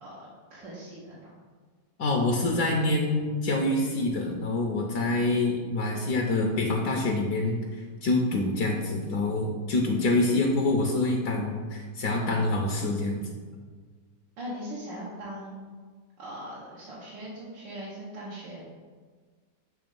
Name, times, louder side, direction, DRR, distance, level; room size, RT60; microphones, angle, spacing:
voice 1, 0.0-1.3 14.4-15.7 16.2-18.6, equal, 80° right, -7 dB, 1.8 m, -40 dB
voice 2, 2.0-7.6 8.0-13.2, left 2 dB, 70° left, 1 dB, 1.3 m, -26 dB
7.8 x 3.2 x 5.2 m, 1.5 s
omnidirectional pair, 1.9 m